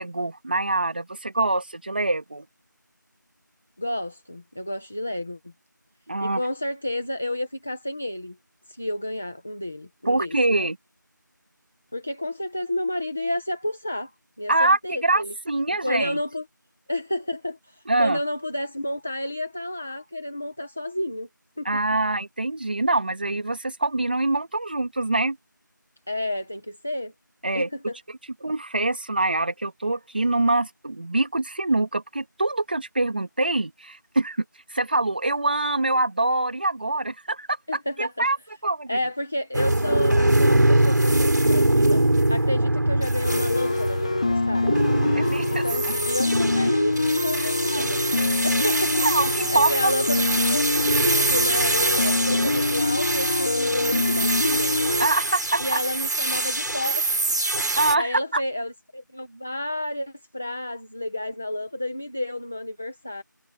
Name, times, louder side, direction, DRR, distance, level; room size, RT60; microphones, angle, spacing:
voice 1, 0.0-2.4 6.1-6.4 10.1-10.8 14.5-16.2 17.9-18.2 21.6-25.4 27.4-27.7 28.4-34.4 34.7-37.6 38.0-38.4 38.6-39.0 45.1-45.9 47.4-47.9 48.3-48.5 49.0-49.9 55.0-55.8 57.8-58.4, right 2 dB, 30° right, 2.4 m, -24 dB
voice 2, 3.8-5.4 6.2-8.4 8.7-10.7 11.9-14.1 14.4-15.3 15.7-16.4 16.9-21.3 21.6-21.7 26.1-27.1 27.5-28.0 37.7-38.3 38.9-42.0 42.3-44.8 45.5-48.0 48.4-49.1 49.5-54.8 55.6-57.4 57.9-63.2, left 1 dB, ahead, 0.8 m, -30 dB
sound 1, 39.5-58.0, right 1 dB, 65° right, 4.1 m, -23 dB
sound 2, 43.3-55.1, left 3 dB, 20° left, 1.9 m, -25 dB
figure-of-eight pair, 175°, 11 cm